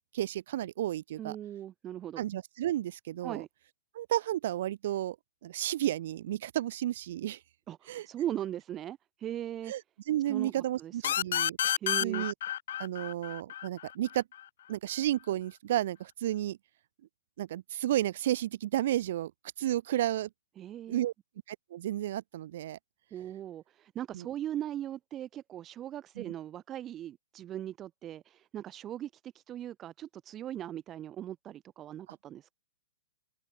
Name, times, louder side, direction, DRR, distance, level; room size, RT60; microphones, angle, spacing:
voice 1, 0.1-1.4 2.2-3.4 3.9-5.2 5.4-7.4 7.9-8.1 9.7-9.8 10.1-11.6 12.0-12.3 12.8-14.2 14.7-16.6 17.4-19.3 19.6-20.3 20.9-21.1 21.5-22.8 24.1-24.3 26.2-26.3, right 13 dB, 40° right, 3.0 m, -32 dB
voice 2, 1.2-2.2 3.2-3.5 7.7-9.7 10.3-11.1 11.8-12.3 20.6-21.0 23.1-32.5, right 11 dB, 15° right, 0.9 m, -39 dB
sound 1, 11.0-14.4, left 11 dB, 50° left, 2.3 m, -31 dB
open air
hypercardioid pair, 180°, 0 cm